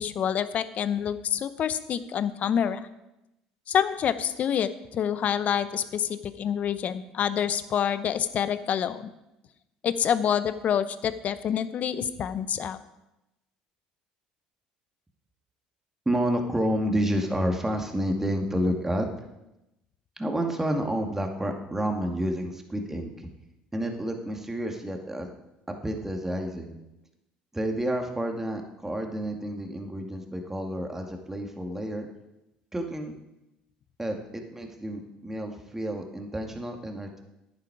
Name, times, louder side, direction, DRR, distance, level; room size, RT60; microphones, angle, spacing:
voice 1, 0.0-2.8 3.7-9.1 9.8-12.8, left 8 dB, 50° left, 13 dB, 0.8 m, -27 dB
voice 2, 16.1-19.1 20.2-23.3 23.7-25.3 25.7-26.8 27.5-32.1 32.7-33.2 34.0-37.2, equal, 10° right, 3 dB, 2.2 m, -30 dB
10.5 x 9.7 x 4.8 m, 0.92 s
hypercardioid pair, 70°, 3 cm